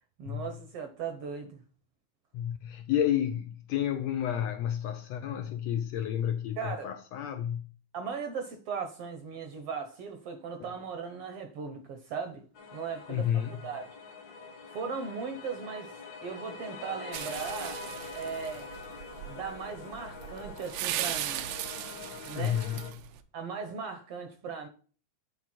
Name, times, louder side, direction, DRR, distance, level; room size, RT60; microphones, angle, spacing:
voice 1, 0.2-1.6 6.6-6.9 7.9-12.4 12.7-13.3 13.6-14.0 14.7-15.9 16.2-17.8 18.1-18.7 19.2-21.4 22.3-22.6 23.3-24.7, right 5 dB, 65° right, 1.6 m, -38 dB
voice 2, 2.3-7.7 10.6-10.7 13.1-13.6 22.3-22.8, left 10 dB, 75° left, 1.6 m, -31 dB
sound 1, 12.6-22.9, left 4 dB, 45° left, 1.3 m, -44 dB
sound 2, 17.1-23.2, right 12 dB, 80° right, 2.1 m, -38 dB
9.3 x 4.6 x 4.3 m
omnidirectional pair, 3.5 m